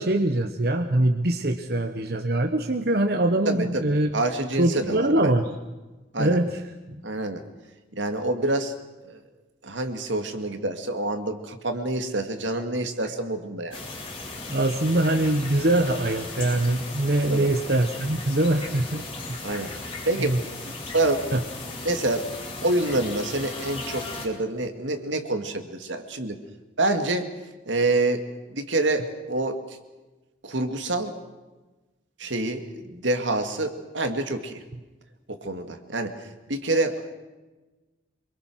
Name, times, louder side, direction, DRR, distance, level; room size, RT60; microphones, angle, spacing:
voice 1, 0.0-4.2 4.6-5.5 6.2-6.6 14.5-19.7 20.2-20.4 21.3-21.4, right 1 dB, 55° right, 6 dB, 1.1 m, -23 dB
voice 2, 3.5-5.3 6.1-6.4 7.0-7.4 7.9-8.7 9.1-9.2 9.6-13.8 17.3-17.5 19.4-19.7 20.1-20.4 20.6-21.3 21.8-22.3 22.6-26.4 26.8-27.3 27.7-28.2 28.5-29.8 30.4-31.1 32.2-34.6 35.3-37.2, right 2 dB, 80° right, 6 dB, 2.3 m, -27 dB
sound 1, 13.7-24.3, left 3 dB, 25° left, 3.7 m, -37 dB
26.0 x 23.5 x 6.4 m, 1.2 s
head